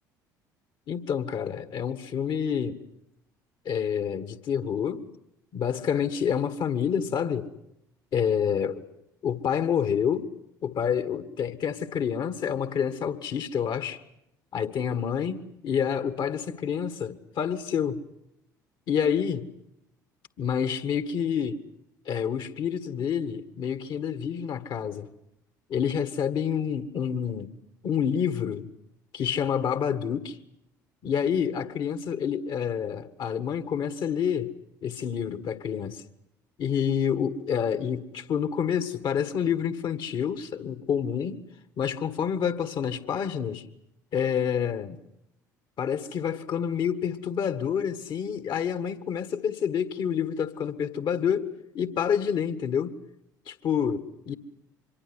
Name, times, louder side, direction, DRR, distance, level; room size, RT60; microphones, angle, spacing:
voice 1, 0.9-2.8 3.7-5.0 5.5-7.5 8.1-8.8 9.2-10.3 10.6-14.0 14.5-18.0 18.9-19.5 20.4-21.6 22.1-25.1 25.7-27.5 27.8-28.7 29.1-30.4 31.0-34.5 34.8-36.0 36.6-41.4 41.8-43.6 44.1-45.0 45.8-53.0 53.5-54.3, left 7 dB, 50° left, 1.9 m, -28 dB
25.5 x 23.0 x 8.1 m
figure-of-eight pair, 55°, 10 cm